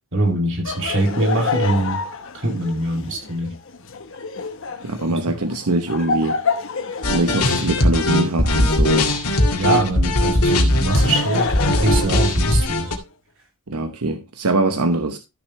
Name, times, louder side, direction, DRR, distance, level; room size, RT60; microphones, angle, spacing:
voice 1, 0.1-2.0 2.3-3.5 5.1-5.4 9.6-12.9, right 2 dB, 55° right, 2.6 m, -23 dB
Laughter, 0.6-9.7 10.6-12.9, left 4 dB, 60° left, 1.1 m, -29 dB
voice 2, 4.8-6.4 7.1-9.1 13.7-15.2, right 2 dB, 85° right, 1.0 m, -22 dB
sound 1, 7.0-12.9, left 1 dB, 85° left, 2.1 m, -19 dB
13.5 x 6.5 x 3.2 m
head